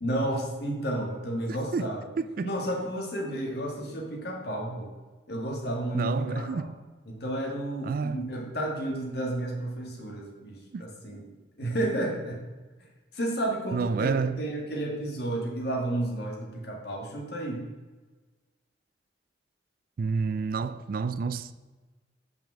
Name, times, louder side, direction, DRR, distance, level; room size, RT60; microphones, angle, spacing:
voice 1, 0.0-2.1 2.4-4.9 5.3-6.6 7.1-11.2 11.6-12.4 13.1-17.6, right 1 dB, 60° left, 1.7 m, -32 dB
voice 2, 2.2-2.5 3.2-3.4 5.9-6.7 7.8-8.3 10.7-10.8 13.7-14.4 20.0-21.5, right 5 dB, 50° right, 0.3 m, -29 dB
6.0 x 5.1 x 6.3 m
head